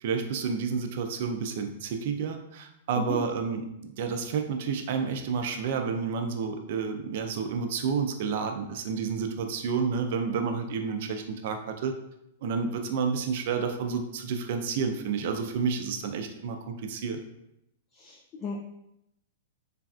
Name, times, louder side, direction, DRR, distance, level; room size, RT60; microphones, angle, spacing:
voice 1, 0.0-11.9 12.4-17.2, right 5 dB, 60° right, 5 dB, 0.4 m, -30 dB
voice 2, 18.0-18.6, left 4 dB, 30° left, 1 dB, 0.3 m, -35 dB
3.2 x 2.4 x 2.3 m, 0.82 s
hypercardioid pair, 135°, 0 cm